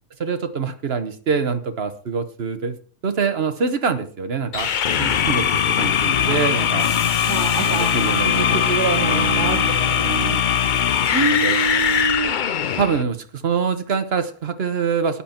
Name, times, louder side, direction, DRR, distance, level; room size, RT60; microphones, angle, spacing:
voice 1, 0.2-2.7 3.0-4.7 5.0-6.9 7.6-9.7 10.0-10.4 11.2-11.6 12.8-15.2, right 6 dB, 45° right, 9 dB, 1.3 m, -25 dB
sound 1, 4.5-13.0, left 8 dB, 70° left, 0.4 m, -20 dB
sound 2, 6.8-12.4, left 4 dB, 40° left, 1.8 m, -40 dB
voice 2, 7.3-10.4 11.1-12.3, right 4 dB, 75° right, 2 dB, 2.0 m, -26 dB
13.0 x 10.5 x 4.5 m, 0.42 s
omnidirectional pair, 1.7 m